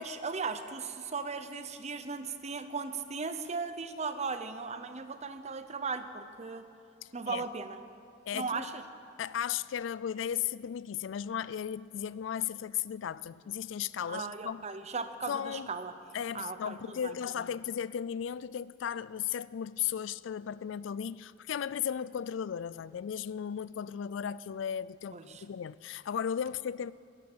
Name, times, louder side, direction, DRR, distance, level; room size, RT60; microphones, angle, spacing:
voice 1, 0.0-6.6 7.1-7.8 8.3-8.8 14.1-15.9 16.3-17.2 25.1-25.4, right 4 dB, 35° right, 0.8 m, -37 dB
voice 2, 8.3-8.7 9.2-14.6 15.3-15.7 16.1-26.9, left 8 dB, 75° left, 0.3 m, -35 dB
13.5 x 10.5 x 8.6 m
head